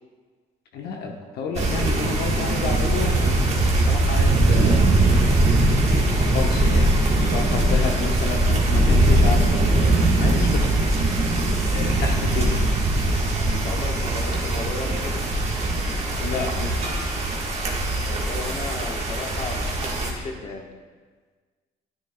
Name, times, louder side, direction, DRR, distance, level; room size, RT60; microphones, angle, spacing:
voice 1, 0.7-4.9 5.9-11.0 11.7-12.6 16.2-16.9, left 4 dB, 75° left, 1 dB, 1.0 m, -31 dB
sound 1, 1.5-20.1, right 1 dB, 40° right, 1.5 m, -21 dB
voice 2, 13.5-15.2 18.1-20.7, left 3 dB, 40° left, 0 dB, 1.2 m, -34 dB
9.8 x 9.7 x 2.3 m, 1.5 s
cardioid pair, 110°, 17 cm